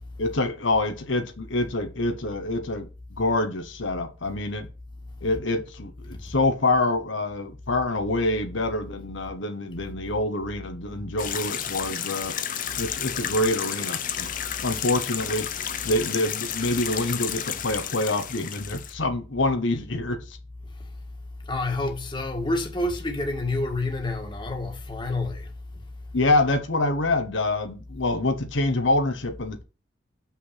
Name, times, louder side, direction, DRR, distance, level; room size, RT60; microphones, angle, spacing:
voice 1, 0.2-4.7 5.2-12.3 12.8-14.3 14.6-15.5 15.8-20.4 26.1-29.6, left 2 dB, 75° left, 1.1 m, -26 dB
sound 1, 11.2-18.9, left 9 dB, 45° left, 0.7 m, -31 dB
voice 2, 21.4-25.5, left 2 dB, 25° left, 1.6 m, -28 dB
6.5 x 5.9 x 5.7 m
head